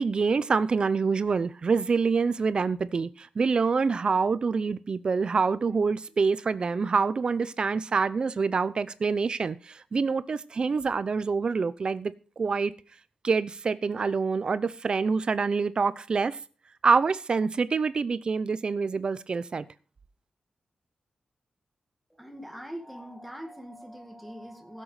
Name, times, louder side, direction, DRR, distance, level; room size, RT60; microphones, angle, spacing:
voice 1, 0.0-12.7 13.2-16.4 16.8-19.6, right 5 dB, 40° right, 0.7 m, -26 dB
voice 2, 22.1-24.8, equal, ahead, 2.1 m, -42 dB
16.0 x 7.7 x 5.0 m
wide cardioid pair, 165°, 2 cm